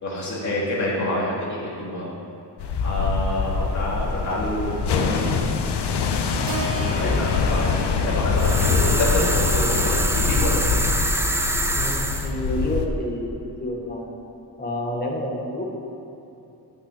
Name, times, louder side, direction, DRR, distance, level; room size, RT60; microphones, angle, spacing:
voice 1, 0.0-2.1 2.8-5.3 6.9-7.7 8.0-10.6, left 1 dB, 45° left, -5 dB, 2.5 m, -27 dB
sound 1, 2.6-12.9, left 5 dB, 75° left, 0.9 m, -24 dB
voice 2, 6.3-7.3 11.7-14.1 14.6-15.8, left 1 dB, 20° left, -1 dB, 1.6 m, -30 dB
Keyboard (musical), 6.5-10.7, right 3 dB, 85° right, 1.8 m, -37 dB
sound 2, 8.4-12.3, right 1 dB, 5° right, 0.4 m, -25 dB
9.0 x 6.1 x 8.4 m, 2.8 s
wide cardioid pair, 165°, 41 cm